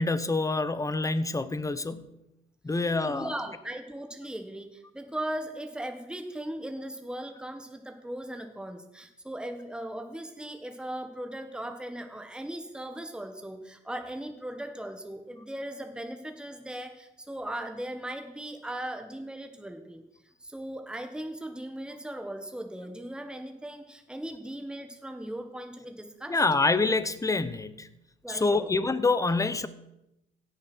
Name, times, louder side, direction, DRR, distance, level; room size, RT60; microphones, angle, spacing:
voice 1, 0.0-2.1 2.6-3.3 26.3-27.9 28.3-29.7, left 3 dB, 15° left, 14 dB, 0.9 m, -26 dB
voice 2, 2.7-20.0 20.4-26.4 28.2-28.7, right 1 dB, 5° right, 6 dB, 1.5 m, -38 dB
16.5 x 6.8 x 6.3 m, 0.88 s
cardioid pair, 90°, 20 cm